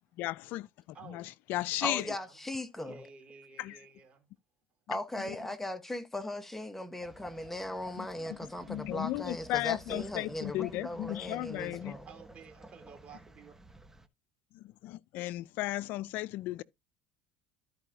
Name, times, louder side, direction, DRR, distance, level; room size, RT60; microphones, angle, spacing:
voice 1, 0.2-0.7 1.1-2.0 3.6-3.8 5.3-5.4 8.0-8.4 8.7-12.0 14.5-16.6, left 17 dB, 65° left, 0.4 m, -35 dB
voice 2, 0.9-1.4 1.9-2.3 2.8-4.3 7.8-8.0 11.8-13.5, right 5 dB, 40° right, 3.1 m, -53 dB
voice 3, 1.8-3.1 4.9-12.1, left 1 dB, 10° left, 1.3 m, -38 dB
sound 1, 7.0-14.1, right 2 dB, 10° right, 1.0 m, -51 dB
13.5 x 4.8 x 2.8 m
supercardioid pair, 90°, 3 cm